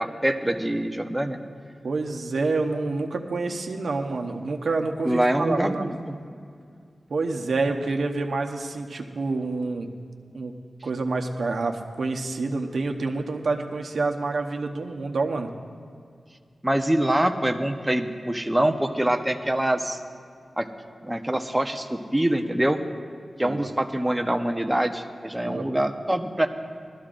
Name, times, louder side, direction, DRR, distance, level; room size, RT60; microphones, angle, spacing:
voice 1, 0.0-1.4 5.0-6.2 16.6-20.0 20.6-20.7 21.0-22.8 23.4-26.5, right 1 dB, 10° right, 5 dB, 0.8 m, -24 dB
voice 2, 1.8-5.9 7.1-9.9 10.3-10.5 10.8-15.5 23.4-23.7 25.4-25.7, right 3 dB, 80° right, 3 dB, 0.9 m, -27 dB
20.0 x 13.0 x 2.5 m, 2.2 s
wide cardioid pair, 85°, 0 cm